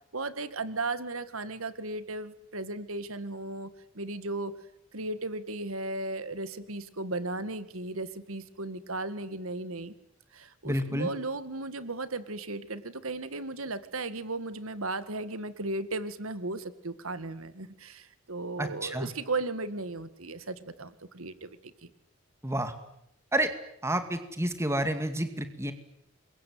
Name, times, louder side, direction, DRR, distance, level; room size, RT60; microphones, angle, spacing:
voice 1, 0.1-4.5 4.9-9.9 10.3-21.7, right 2 dB, 85° right, 13 dB, 2.0 m, -36 dB
voice 2, 10.6-11.1 18.6-19.1 22.4-22.7 23.3-23.5 23.8-25.7, right 1 dB, 15° right, 9 dB, 2.3 m, -29 dB
27.5 x 23.0 x 9.5 m, 0.77 s
head